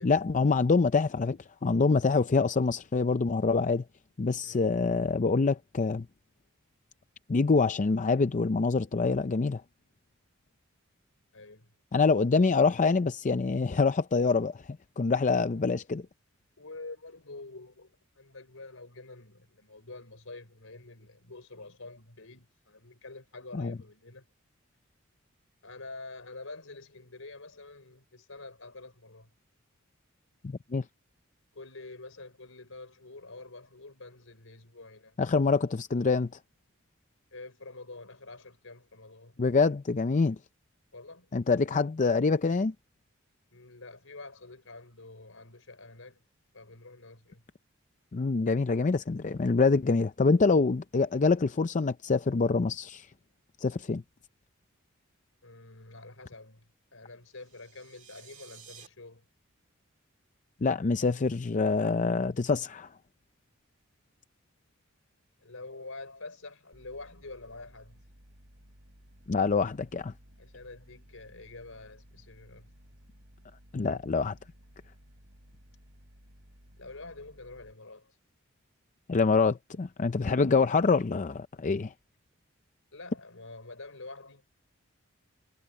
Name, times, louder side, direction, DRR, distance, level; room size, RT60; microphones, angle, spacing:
voice 1, 0.0-3.8 4.2-6.1 7.3-9.6 11.9-14.6 15.0-16.0 23.5-23.8 30.4-30.8 35.2-36.3 39.4-40.4 41.3-42.7 48.1-53.1 53.6-54.0 60.6-62.9 69.3-70.1 73.7-74.4 79.1-81.9, left 4 dB, 35° left, 0.5 m, -25 dB
voice 2, 11.3-11.7 16.6-24.3 25.6-29.3 31.5-35.2 37.3-39.4 40.9-41.3 43.5-46.2 46.5-47.4 55.4-59.2 65.4-68.0 70.4-72.7 76.8-78.2 82.9-84.4, left 3 dB, 70° left, 5.3 m, -47 dB
sound 1, 57.3-58.9, right 8 dB, 40° right, 2.6 m, -53 dB
sound 2, 66.7-77.7, equal, 65° right, 7.8 m, -57 dB
head